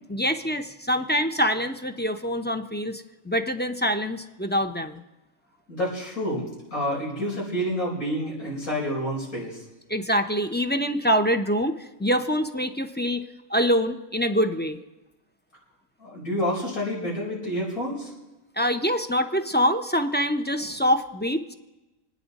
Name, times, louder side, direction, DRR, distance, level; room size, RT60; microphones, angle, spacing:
voice 1, 0.1-5.0 9.9-11.7 12.0-13.2 13.5-14.8 18.6-21.5, equal, 10° left, 6 dB, 0.5 m, -25 dB
voice 2, 5.7-9.6 16.0-18.1, equal, 85° left, -5 dB, 5.1 m, -29 dB
29.5 x 9.8 x 4.1 m, 1.0 s
omnidirectional pair, 1.5 m